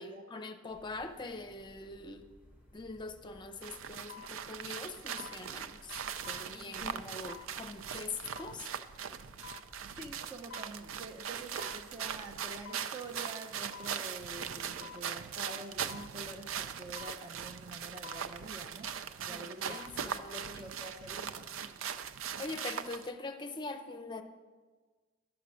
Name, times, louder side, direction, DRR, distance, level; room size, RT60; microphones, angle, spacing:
voice 1, 0.0-2.3 2.7-8.7 19.3-20.6 22.4-24.2, left 3 dB, 25° left, 7 dB, 0.7 m, -43 dB
sound 1, 0.7-12.7, left 1 dB, 10° right, 1.4 m, -57 dB
sound 2, 2.9-3.1 4.1-4.3 5.2-5.4 6.2-6.5 7.3-7.5 8.4-8.6 9.4-9.7 10.5-10.8 11.6-11.8 12.6-12.9 13.7-14.0 14.8-15.1 15.9-16.1 17.0-17.2 18.0-18.3 19.5-20.0 20.4-20.5, left 9 dB, 65° left, 0.4 m, -49 dB
sound 3, 3.6-23.1, right 8 dB, 80° right, 0.5 m, -40 dB
voice 2, 9.9-19.8 20.3-21.5, right 2 dB, 25° right, 4 dB, 0.6 m, -47 dB
11.5 x 6.1 x 6.3 m, 1.4 s
head